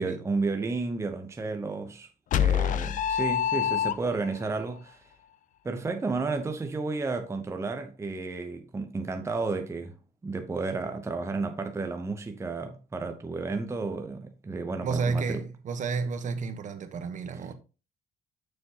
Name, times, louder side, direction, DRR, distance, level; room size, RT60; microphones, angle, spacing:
voice 1, 0.0-5.0 5.6-10.0 10.2-15.4, right 3 dB, 15° right, 0.7 m, -32 dB
sound 1, 2.3-4.4, left 9 dB, 50° left, 0.5 m, -26 dB
voice 2, 14.8-17.5, right 4 dB, 45° right, 1.1 m, -31 dB
6.9 x 6.5 x 2.8 m
cardioid pair, 110°, 17 cm